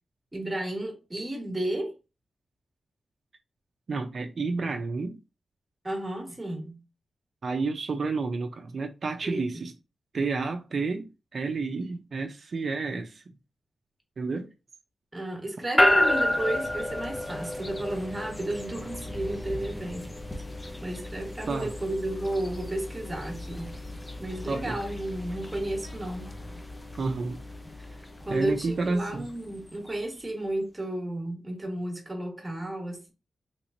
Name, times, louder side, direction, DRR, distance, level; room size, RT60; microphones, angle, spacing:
voice 1, 0.3-1.9 5.8-6.8 9.2-9.6 15.1-20.1 20.8-23.8 24.2-26.3 28.2-33.1, right 1 dB, 20° right, 1.4 m, -32 dB
voice 2, 3.9-5.2 7.4-9.7 10.1-13.2 14.2-14.5 21.5-21.7 24.5-24.8 27.0-27.4 28.3-29.3, right 4 dB, 60° right, 0.5 m, -30 dB
sound 1, 15.8-30.0, left 1 dB, 20° left, 0.6 m, -32 dB
3.2 x 3.1 x 2.6 m
cardioid pair, 80°, 0 cm